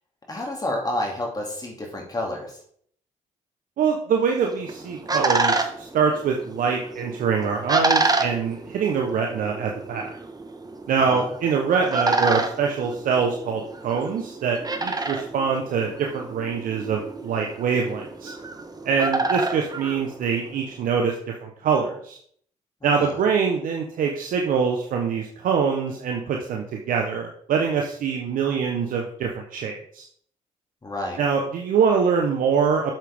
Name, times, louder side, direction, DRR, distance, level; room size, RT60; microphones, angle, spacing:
voice 1, 0.3-2.6 11.1-11.3 22.8-23.1 30.8-31.2, left 1 dB, 25° left, 0 dB, 2.6 m, -29 dB
voice 2, 3.8-10.1 10.9-18.3 18.8-21.1 21.4-22.2 22.8-30.0 31.2-32.9, right 6 dB, 70° right, 1 dB, 1.0 m, -24 dB
sound 1, 4.4-20.7, right 3 dB, 25° right, 1.4 m, -29 dB
7.5 x 7.5 x 3.6 m, 0.62 s
supercardioid pair, 55°, 14 cm